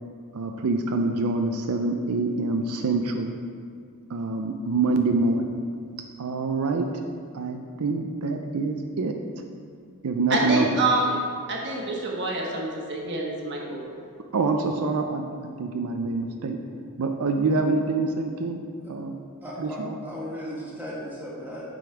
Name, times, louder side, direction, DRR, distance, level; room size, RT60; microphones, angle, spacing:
voice 1, 0.3-3.3 4.1-5.6 6.2-6.9 7.3-9.1 10.0-10.6 14.3-16.6 17.0-18.6 18.9-19.1 19.6-20.0, right 3 dB, 80° right, 4 dB, 0.5 m, -26 dB
voice 2, 10.3-11.1 11.5-14.0, right 2 dB, 50° right, -2 dB, 1.2 m, -27 dB
voice 3, 19.4-21.8, equal, 10° right, -7 dB, 1.7 m, -36 dB
7.7 x 5.2 x 4.8 m, 2.2 s
head